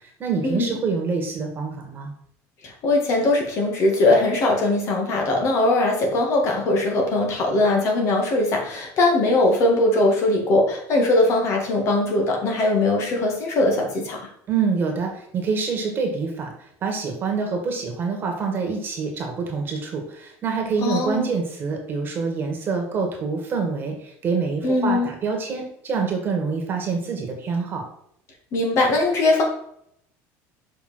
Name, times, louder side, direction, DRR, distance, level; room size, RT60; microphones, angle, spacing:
voice 1, 0.2-2.1 14.5-16.5 16.8-27.8, right 5 dB, 30° right, 2 dB, 1.8 m, -26 dB
voice 2, 2.8-14.2 20.8-21.3 24.6-25.1 28.5-29.4, left 2 dB, 45° left, 1 dB, 2.2 m, -20 dB
6.5 x 5.3 x 4.4 m, 0.69 s
cardioid pair, 150°, 7 cm